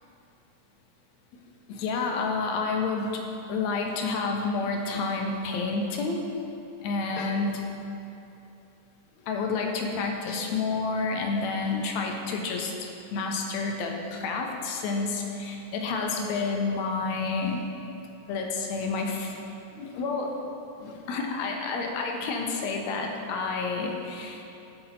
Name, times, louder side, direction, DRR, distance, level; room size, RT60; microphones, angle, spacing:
voice 1, 1.7-3.2 3.5-6.3 6.8-7.6 9.2-17.6 18.3-19.4 19.7-20.3 20.8-24.4, left 4 dB, 75° left, 2 dB, 1.8 m, -29 dB
11.5 x 5.4 x 4.0 m, 2.8 s
omnidirectional pair, 3.7 m